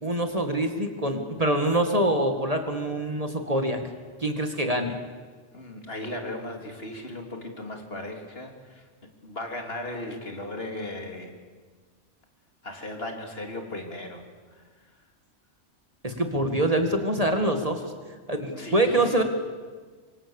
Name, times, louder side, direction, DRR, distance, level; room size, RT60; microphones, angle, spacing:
voice 1, 0.0-3.8 4.2-5.0 16.0-17.9 18.3-19.2, right 1 dB, 30° right, 5 dB, 2.1 m, -25 dB
voice 2, 5.5-8.9 9.2-11.3 12.6-14.2 14.5-14.6 18.5-19.2, left 1 dB, 55° left, 3 dB, 3.3 m, -36 dB
26.0 x 25.0 x 7.2 m, 1.5 s
omnidirectional pair, 1.2 m